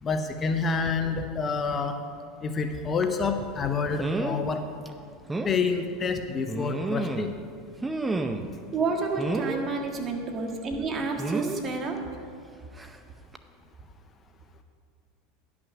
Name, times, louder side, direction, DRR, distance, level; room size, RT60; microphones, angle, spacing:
voice 1, 0.0-2.0 2.4-4.6 5.4-7.3, left 4 dB, 30° left, 7 dB, 0.7 m, -28 dB
sound 1, 3.0-3.2 4.0-4.4 4.8-4.9 5.3-5.5 6.5-7.4 7.8-8.5 9.2-9.6 11.2-11.6 12.8-13.0 13.3-13.4, right 2 dB, 10° right, 0.7 m, -30 dB
voice 2, 8.7-12.0, right 4 dB, 35° right, 2 dB, 1.7 m, -29 dB
11.0 x 6.1 x 6.0 m, 2.2 s
hypercardioid pair, 100°, 0 cm